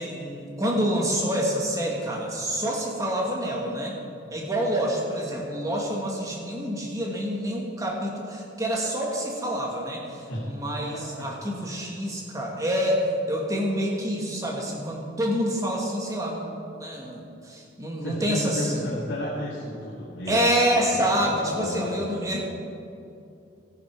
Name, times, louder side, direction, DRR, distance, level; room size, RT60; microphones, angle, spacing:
voice 1, 0.0-4.0 4.3-18.8 20.3-22.4, equal, 15° right, -1 dB, 1.7 m, -27 dB
voice 2, 18.0-20.5 20.9-22.3, left 1 dB, 85° left, -8 dB, 2.5 m, -33 dB
13.5 x 11.0 x 4.6 m, 2.6 s
head